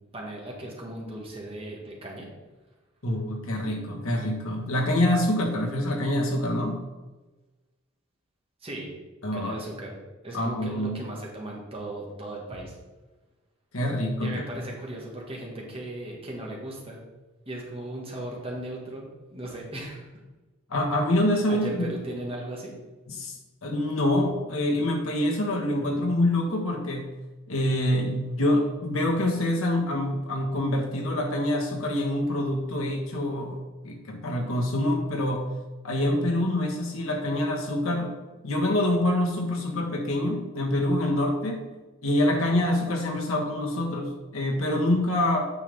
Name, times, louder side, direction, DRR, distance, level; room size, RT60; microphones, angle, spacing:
voice 1, 0.1-2.3 8.6-8.9 9.3-9.9 10.2-12.8 14.2-17.0 17.5-20.1 21.5-22.7, right 1 dB, 25° right, -2 dB, 1.6 m, -37 dB
voice 2, 3.0-6.8 9.2-9.6 10.3-11.0 13.7-14.6 20.7-21.8 23.1-27.1 27.5-33.6 33.8-35.5 35.8-38.2 38.4-41.6 42.0-45.5, left 1 dB, 80° left, 1 dB, 1.4 m, -26 dB
8.8 x 5.4 x 3.5 m, 1.2 s
head